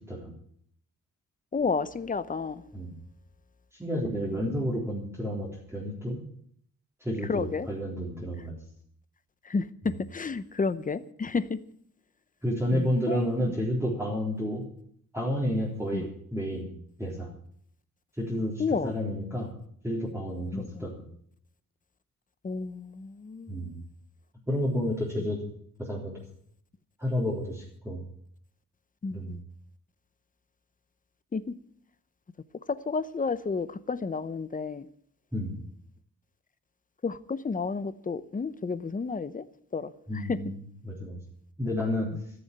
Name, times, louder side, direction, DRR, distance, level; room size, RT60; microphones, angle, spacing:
voice 1, 1.5-2.6 7.3-7.7 9.5-11.6 12.7-13.2 15.9-16.0 18.6-18.9 20.5-20.8 22.4-23.6 29.0-29.4 31.3-31.4 32.7-34.8 37.0-39.4 39.7-39.9 40.3-40.4, left 4 dB, 25° left, 0.8 m, -31 dB
voice 2, 3.8-6.2 7.0-8.6 12.4-14.7 15.1-16.7 17.0-17.3 18.2-19.5 19.8-21.0 23.5-23.8 24.5-25.5 25.8-26.2 27.0-28.0 29.1-29.4 35.3-35.5 40.1-41.2 41.6-42.1, equal, 10° right, 3.7 m, -30 dB
14.0 x 7.1 x 9.9 m
wide cardioid pair, 135°, 34 cm